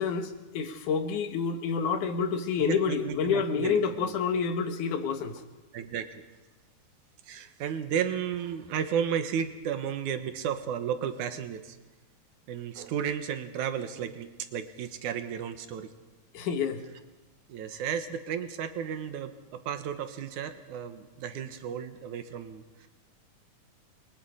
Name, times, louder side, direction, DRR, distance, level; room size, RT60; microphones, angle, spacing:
voice 1, 0.0-5.4 16.3-16.8, left 6 dB, 70° left, 7 dB, 2.9 m, -28 dB
voice 2, 2.6-4.1 5.7-6.2 7.2-11.8 12.5-15.9 17.5-22.9, right 8 dB, 70° right, 8 dB, 2.6 m, -33 dB
28.5 x 23.0 x 5.1 m, 1.2 s
omnidirectional pair, 3.7 m